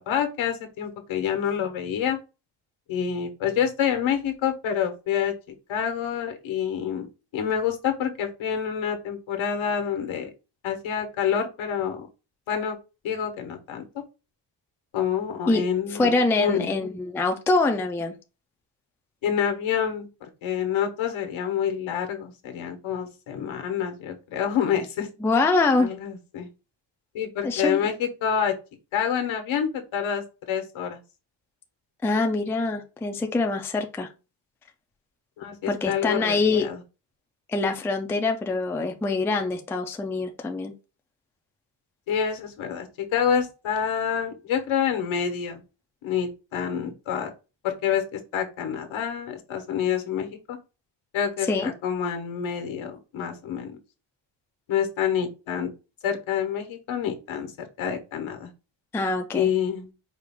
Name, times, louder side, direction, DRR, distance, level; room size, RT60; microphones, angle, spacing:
voice 1, 0.0-2.2 2.9-7.1 7.3-10.3 10.6-12.1 12.5-12.8 13.0-13.8 14.9-16.8 19.2-25.1 25.8-26.5 27.1-28.5 28.9-31.0 35.4-36.8 42.1-45.6 46.0-47.3 47.6-50.6 51.1-53.8 54.7-55.7 56.0-57.5 57.8-58.5 59.3-59.9, left 8 dB, 80° left, 1.2 m, -27 dB
voice 2, 15.9-18.2 25.2-25.9 27.4-27.9 32.0-34.1 35.7-36.7 37.5-40.7 51.5-51.7 58.9-59.5, left 3 dB, 5° left, 0.3 m, -24 dB
4.9 x 2.4 x 3.5 m
wide cardioid pair, 170°, 47 cm